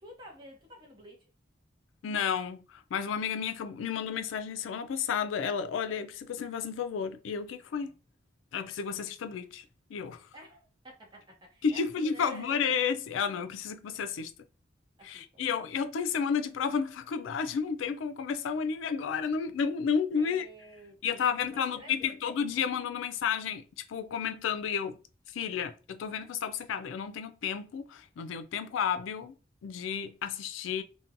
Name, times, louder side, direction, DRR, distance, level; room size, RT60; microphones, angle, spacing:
voice 1, 0.0-1.3 7.8-7.9 10.3-12.6 15.0-15.4 20.2-22.2, equal, 25° right, 0.7 m, -51 dB
voice 2, 2.0-7.9 8.5-9.6 9.9-10.3 11.6-14.3 15.0-20.5 21.0-23.6 23.9-25.0 25.3-29.3 29.6-30.8, left 6 dB, 90° left, 0.3 m, -32 dB
2.7 x 2.2 x 2.5 m
head